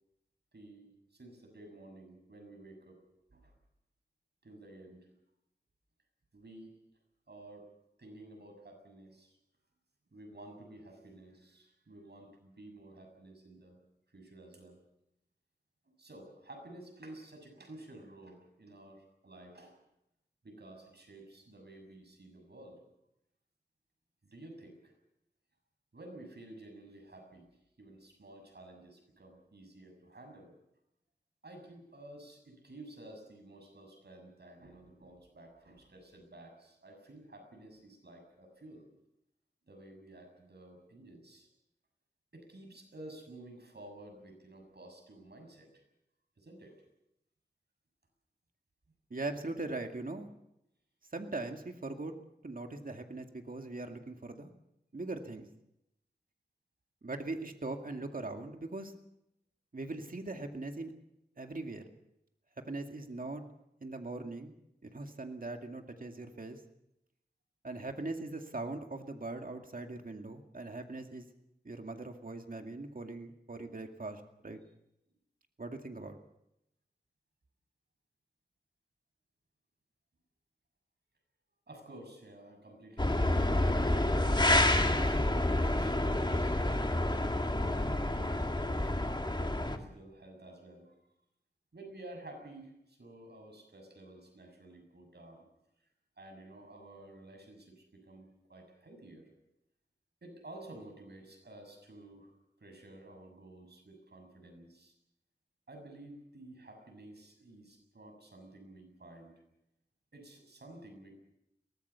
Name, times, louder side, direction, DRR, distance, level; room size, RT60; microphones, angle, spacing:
voice 1, 0.5-3.0 3.3-3.5 4.4-5.1 6.3-6.7 7.3-7.7 8.0-9.4 10.1-13.8 14.1-14.8 15.9-19.7 20.4-22.8 24.2-24.9 25.9-27.5 27.8-30.5 31.4-38.9 39.7-41.5 42.3-45.8 46.4-46.8 81.7-86.5 87.4-90.9 91.7-95.4 96.2-99.3 100.2-102.3 102.6-104.9 105.7-109.3 110.1-111.1, right 1 dB, 80° right, 4 dB, 6.9 m, -52 dB
voice 2, 49.1-50.3 51.1-52.1 52.4-54.5 54.9-55.5 57.0-58.9 59.7-60.9 61.4-61.8 62.7-63.4 63.8-64.5 64.8-66.6 67.6-71.3 71.6-74.6 75.6-76.2, right 2 dB, 55° right, 4 dB, 2.3 m, -40 dB
sound 1, 83.0-89.8, left 1 dB, 25° left, 2.2 m, -28 dB
22.5 x 19.0 x 7.1 m, 0.83 s
wide cardioid pair, 60°, 17 cm